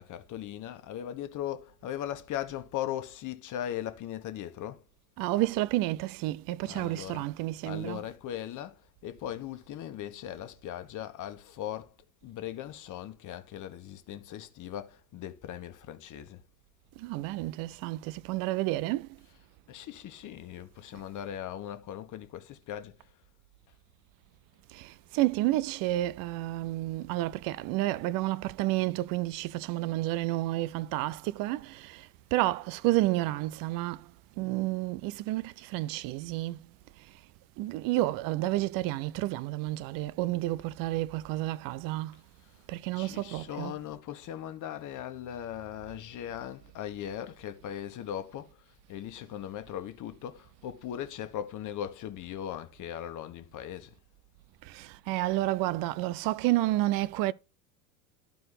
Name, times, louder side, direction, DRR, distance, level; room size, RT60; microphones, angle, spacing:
voice 1, 0.0-4.8 6.6-7.3 7.6-11.9 12.2-16.4 19.3-19.4 19.7-23.1 42.9-53.9, left 11 dB, 40° left, 1.4 m, -39 dB
voice 2, 5.2-8.1 17.0-19.1 20.9-21.0 24.7-34.1 34.4-36.6 37.0-37.2 37.6-42.2 42.7-43.8 54.6-57.3, right 17 dB, 50° right, 0.6 m, -30 dB
12.0 x 4.7 x 4.1 m
hypercardioid pair, 85°, 45 cm